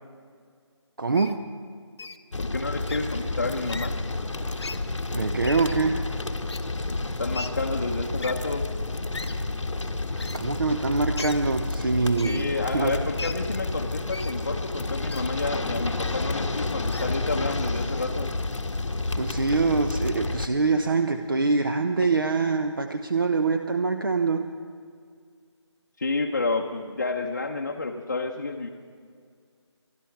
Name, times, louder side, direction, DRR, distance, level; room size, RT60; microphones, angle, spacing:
voice 1, 1.0-1.4 5.1-6.0 10.2-13.0 19.2-24.5, right 4 dB, 45° right, 7 dB, 0.6 m, -24 dB
Wild animals, 1.1-1.3 2.0-2.2 2.9-3.0 3.7-3.9 4.6-4.8 5.4-5.8 6.5-6.6 7.3-7.5 8.2-8.3 9.1-9.3 10.2-10.4 11.2-11.4 12.2-12.4 13.2-13.3 14.1-14.3 15.1-15.2 16.0-16.1 16.9-17.1, left 3 dB, 65° left, 1.0 m, -37 dB
sound 1, 2.3-20.5, left 2 dB, 90° left, 1.2 m, -30 dB
voice 2, 2.4-3.9 7.2-8.6 10.7-10.8 12.2-18.3 26.0-28.7, left 3 dB, 35° left, 0 dB, 0.8 m, -30 dB
24.5 x 11.5 x 4.6 m, 2.1 s
figure-of-eight pair, 175°, 15 cm